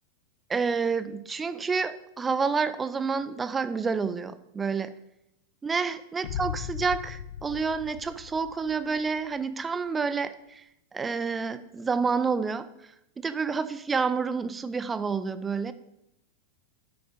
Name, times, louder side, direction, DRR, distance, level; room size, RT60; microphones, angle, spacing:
voice 1, 0.5-4.9 5.6-10.6 10.9-12.7 13.2-15.7, right 5 dB, 15° right, 13 dB, 0.5 m, -29 dB
sound 1, 6.2-9.2, left 10 dB, 55° left, 0.4 m, -38 dB
7.8 x 5.1 x 5.0 m, 0.82 s
figure-of-eight pair, 90°, 0 cm